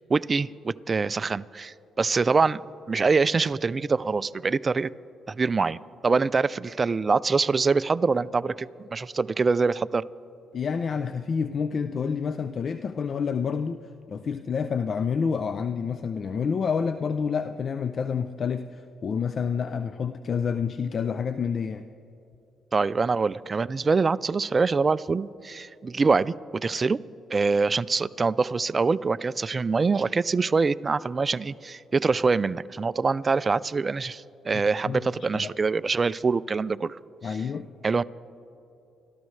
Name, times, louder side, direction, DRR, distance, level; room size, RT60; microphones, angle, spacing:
voice 1, 0.1-2.6 2.9-4.9 5.3-10.0 22.7-26.3 26.6-27.0 27.3-37.0 37.8-38.0, right 4 dB, 35° right, 17 dB, 0.3 m, -24 dB
voice 2, 10.5-13.8 14.1-21.9 34.9-35.0 35.3-35.5 37.2-37.7, left 6 dB, 50° left, 11 dB, 0.4 m, -28 dB
28.5 x 13.0 x 3.2 m, 2.8 s
cardioid pair, 90°, 0 cm